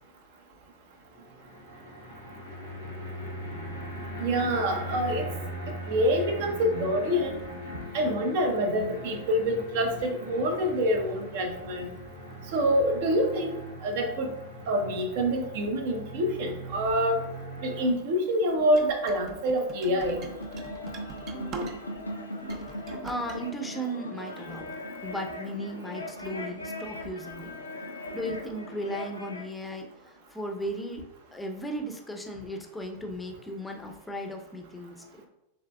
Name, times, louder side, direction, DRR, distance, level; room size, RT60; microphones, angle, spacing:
sound 1, 1.1-17.9, equal, 80° right, 1.1 m, -40 dB
voice 1, 4.2-5.3 5.9-7.4 7.9-11.9 12.5-13.6 13.8-14.3 14.7-17.2 17.6-20.2, equal, 50° right, 4 dB, 0.9 m, -26 dB
sound 2, 18.7-22.1 22.4-23.4, right 3 dB, 35° right, 0.6 m, -41 dB
sound 3, 19.7-29.5, left 1 dB, 85° left, 0.5 m, -39 dB
voice 2, 23.0-24.7 25.0-27.5 28.1-31.0 31.3-35.3, equal, 5° left, 3 dB, 0.7 m, -36 dB
6.6 x 3.3 x 2.3 m, 0.92 s
figure-of-eight pair, 90°, 0 cm